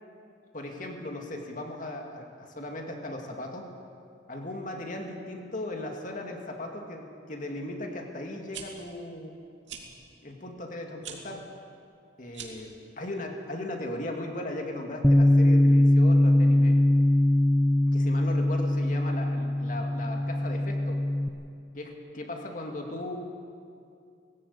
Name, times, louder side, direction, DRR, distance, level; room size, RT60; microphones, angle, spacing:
voice 1, 0.5-3.7 4.3-9.3 10.2-11.4 12.2-16.8 17.9-21.0 21.7-23.2, left 1 dB, 45° left, 2 dB, 2.4 m, -37 dB
sound 1, 8.3-8.6 9.6-9.8 11.0-11.2 12.3-12.7, right 8 dB, 80° right, 2.8 m, -41 dB
Bass guitar, 15.0-21.3, left 1 dB, 5° left, 0.6 m, -22 dB
19.0 x 15.5 x 8.7 m, 2.4 s
head